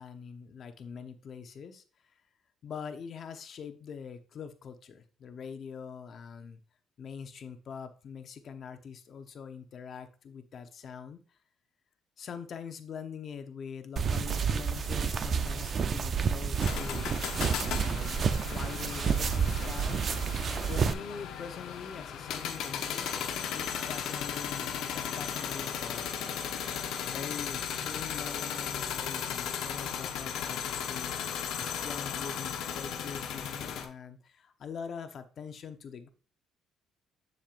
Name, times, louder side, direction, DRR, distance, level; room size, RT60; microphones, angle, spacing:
voice 1, 0.0-2.2 2.6-6.6 7.0-11.4 12.2-17.3 17.6-36.1, left 6 dB, 50° left, 8 dB, 0.9 m, -44 dB
sound 1, 14.0-20.9, right 6 dB, 45° right, 0.6 m, -30 dB
sound 2, 16.6-33.8, left 8 dB, 80° left, 0.9 m, -36 dB
7.5 x 6.6 x 2.5 m, 0.38 s
cardioid pair, 110°, 0 cm